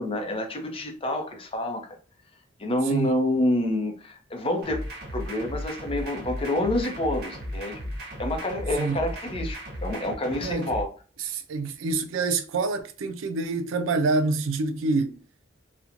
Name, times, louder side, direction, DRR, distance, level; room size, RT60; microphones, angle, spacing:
voice 1, 0.0-1.9 2.6-4.8 5.1-7.8 8.2-10.9, left 1 dB, 30° left, 0.6 m, -28 dB
sound 1, 4.6-10.8, equal, 55° right, 0.8 m, -35 dB
voice 2, 10.4-10.7 11.2-15.1, right 3 dB, 85° right, 0.4 m, -26 dB
2.9 x 2.1 x 2.4 m
head